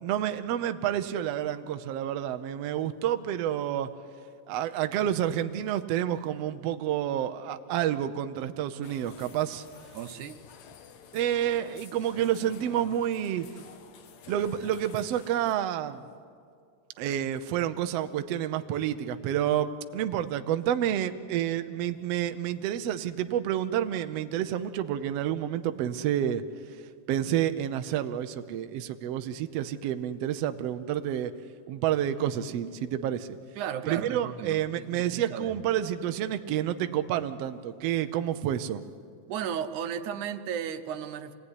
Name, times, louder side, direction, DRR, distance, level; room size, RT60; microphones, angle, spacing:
voice 1, 0.0-3.9 4.5-9.6 11.1-13.5 14.3-16.0 17.0-26.4 27.1-31.3 31.7-33.4 33.9-38.8, right 11 dB, 70° right, 9 dB, 1.7 m, -29 dB
sound 1, 8.8-15.5, left 7 dB, 70° left, 2.4 m, -50 dB
voice 2, 9.9-10.4 33.6-35.5 39.3-41.3, right 8 dB, 85° right, 9 dB, 2.4 m, -35 dB
26.0 x 18.5 x 9.8 m, 2.3 s
omnidirectional pair, 3.4 m